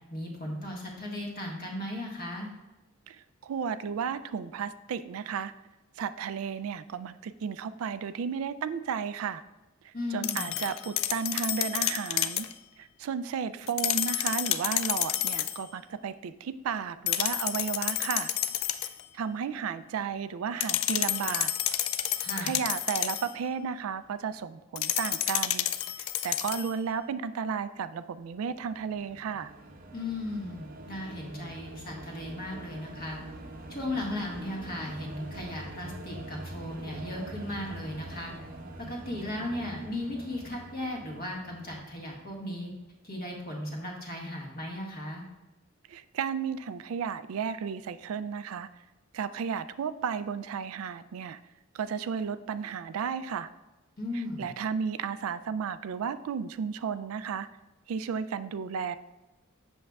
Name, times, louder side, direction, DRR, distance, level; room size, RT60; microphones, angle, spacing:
voice 1, 0.1-2.5 9.9-10.5 22.2-22.5 29.9-33.2 33.7-38.3 38.8-42.7 43.0-45.2 54.0-54.5, left 1 dB, 50° left, -1 dB, 1.5 m, -36 dB
voice 2, 3.1-5.5 6.0-9.4 9.8-12.5 12.8-18.3 19.1-21.5 22.4-25.7 26.0-29.5 45.9-48.7 49.1-51.4 51.7-53.5 54.1-57.5 57.9-59.0, right 6 dB, 90° right, 12 dB, 0.3 m, -33 dB
sound 1, 10.2-12.5 13.7-15.6 17.1-19.0 20.6-23.3 24.8-26.7, left 12 dB, 75° left, 0.4 m, -30 dB
sound 2, 28.3-42.8, right 1 dB, 40° right, 0.7 m, -44 dB
7.8 x 6.3 x 2.3 m, 1.1 s
head